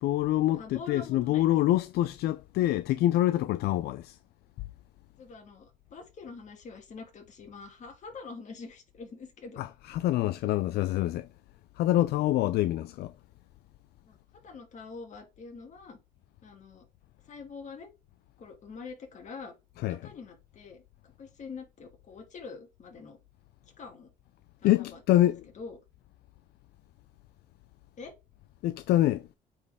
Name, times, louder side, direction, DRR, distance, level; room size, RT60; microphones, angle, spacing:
voice 1, 0.0-4.2 9.6-11.3 11.8-13.1 19.8-20.1 24.6-25.4 28.6-29.3, left 14 dB, 75° left, 0.4 m, -26 dB
voice 2, 0.5-1.5 5.2-9.6 14.1-14.2 14.4-16.0 16.4-16.9 17.3-17.9 18.4-19.5 19.9-20.8 21.2-23.2 23.8-24.1 24.6-25.8 28.0-28.1, left 4 dB, 45° left, 2.4 m, -45 dB
8.7 x 4.4 x 3.5 m
cardioid pair, 110°, 17 cm